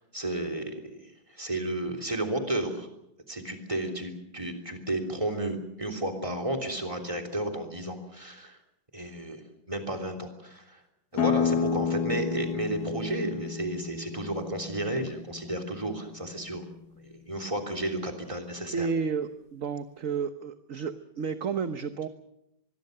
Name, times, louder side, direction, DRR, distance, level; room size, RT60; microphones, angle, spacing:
voice 1, 0.0-2.9 3.3-8.6 8.9-9.4 9.7-10.8 11.1-16.6 17.0-18.9, right 1 dB, 15° right, 3 dB, 3.3 m, -32 dB
sound 1, 11.2-16.5, left 7 dB, 55° left, 1.6 m, -31 dB
voice 2, 18.7-22.1, right 5 dB, 50° right, 9 dB, 1.1 m, -31 dB
25.0 x 21.5 x 6.7 m, 0.83 s
omnidirectional pair, 2.2 m